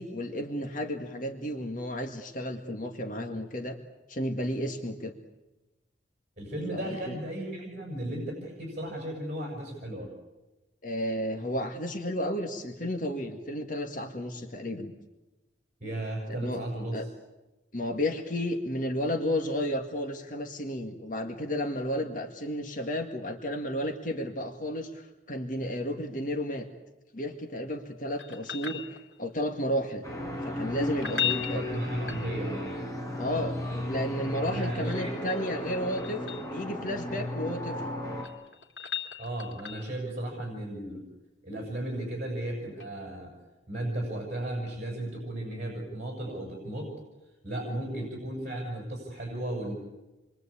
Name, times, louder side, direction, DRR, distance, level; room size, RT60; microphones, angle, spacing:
voice 1, 0.0-3.8 4.1-5.1 6.7-7.2 10.8-14.9 16.3-16.6 16.9-17.1 17.7-26.7 27.1-30.0 30.4-31.7 33.2-37.8 48.0-48.1, equal, 45° left, 3 dB, 2.0 m, -32 dB
voice 2, 6.4-10.1 15.8-17.1 31.5-32.8 34.4-35.2 39.2-41.0 41.4-43.3 43.7-46.9 47.4-49.7, right 1 dB, 40° right, 0 dB, 7.2 m, -35 dB
sound 1, 28.2-29.4 30.9-32.7 34.9-36.5 37.9-40.0 42.8-42.9, left 8 dB, 85° left, 3.4 m, -36 dB
sound 2, 30.0-38.2, left 1 dB, 20° left, 4.7 m, -35 dB
28.0 x 23.5 x 8.6 m, 1.1 s
head